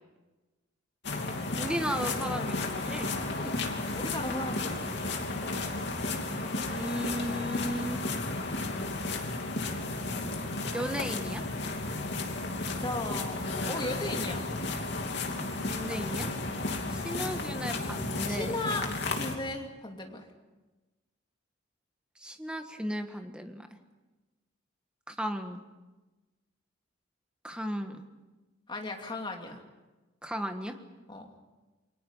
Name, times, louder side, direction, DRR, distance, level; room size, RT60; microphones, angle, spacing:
sound 1, 1.0-19.4, left 2 dB, 60° left, 2.8 m, -33 dB
voice 1, 1.6-3.1 6.7-8.1 10.7-11.4 15.7-16.3 16.9-18.5 22.2-23.7 25.1-25.6 27.4-28.1 30.2-30.8, equal, 5° right, 6 dB, 1.5 m, -35 dB
voice 2, 3.3-3.7 3.9-5.0 12.6-14.4 16.7-16.9 18.3-20.3 28.7-29.6 31.1-31.3, left 2 dB, 25° left, 1 dB, 2.7 m, -36 dB
29.0 x 23.0 x 5.6 m, 1.2 s
head